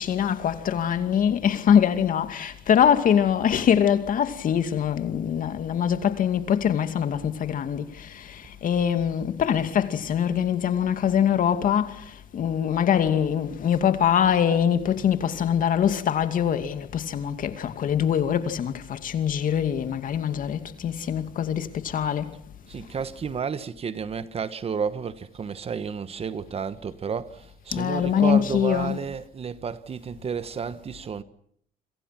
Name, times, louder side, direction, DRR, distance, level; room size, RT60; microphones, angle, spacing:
voice 1, 0.0-12.0 12.3-22.3 27.7-29.0, left 8 dB, 55° left, 2.5 m, -23 dB
voice 2, 22.7-31.2, right 6 dB, 35° right, 1.3 m, -31 dB
29.0 x 26.5 x 6.0 m
cardioid pair, 110°, 17 cm